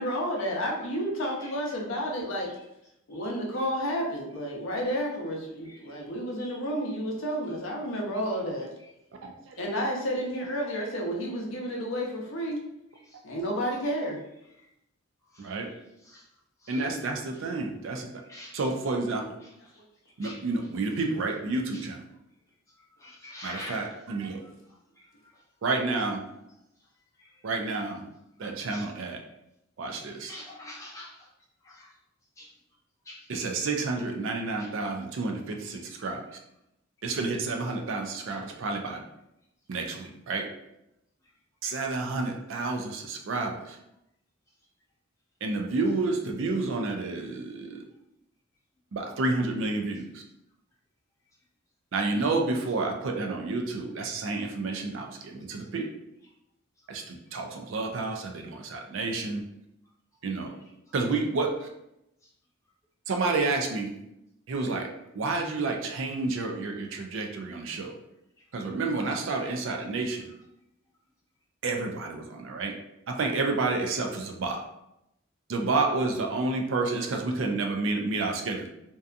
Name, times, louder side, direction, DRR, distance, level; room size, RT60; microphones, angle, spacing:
voice 1, 0.0-2.5 3.1-8.7 9.6-12.6 13.2-14.2 19.8-19.9, equal, 70° left, -1 dB, 0.6 m, -31 dB
voice 2, 9.2-9.6 15.4-15.7 16.7-18.1 18.5-19.2 20.2-22.0 23.4-24.4 25.6-26.3 27.4-28.1 28.4-29.2 29.8-30.4 33.3-36.2 37.0-39.0 39.7-40.5 41.6-43.8 45.4-47.8 48.9-50.2 51.9-55.9 56.9-59.4 60.2-60.5 60.9-61.7 63.1-63.9 64.5-64.9 65.1-67.9 68.5-70.3 71.6-72.7 73.1-74.6 75.5-78.7, right 3 dB, 65° right, 3 dB, 0.4 m, -30 dB
voice 3, 23.0-23.9 28.7-28.8 30.3-31.1 32.4-32.5 33.1-33.2, left 1 dB, 15° left, -5 dB, 0.5 m, -42 dB
2.6 x 2.3 x 2.4 m, 0.84 s
head